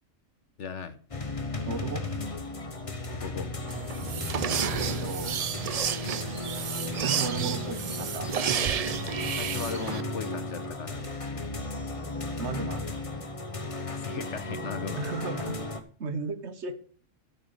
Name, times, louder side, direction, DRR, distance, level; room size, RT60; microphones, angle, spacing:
voice 1, 0.6-1.0 3.1-3.5 9.2-11.3 13.7-15.5, left 6 dB, 65° left, 10 dB, 1.3 m, -38 dB
sound 1, 1.1-15.8, left 2 dB, 30° left, 1.0 m, -35 dB
voice 2, 1.7-2.0 4.9-5.4 7.0-8.3 12.4-12.8 15.0-15.6 16.0-16.7, right 5 dB, 60° right, 9 dB, 1.4 m, -34 dB
sound 2, 3.7-10.0, right 8 dB, 80° right, 0.3 m, -31 dB
13.5 x 6.1 x 5.4 m, 0.43 s
omnidirectional pair, 1.3 m